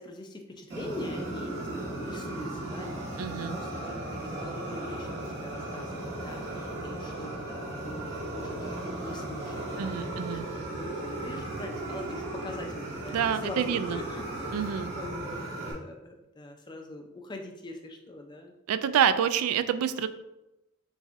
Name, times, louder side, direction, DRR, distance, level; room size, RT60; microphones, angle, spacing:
voice 1, 0.0-10.4 10.7-14.3 14.5-18.5, left 2 dB, 20° left, 3 dB, 0.4 m, -43 dB
Fire, 0.7-15.7, right 2 dB, 55° right, 1.4 m, -36 dB
voice 2, 3.2-3.6 9.8-10.4 13.1-14.0 14.5-14.9 18.7-20.1, right 8 dB, 90° right, 15 dB, 0.3 m, -27 dB
6.0 x 2.7 x 2.5 m, 0.95 s
head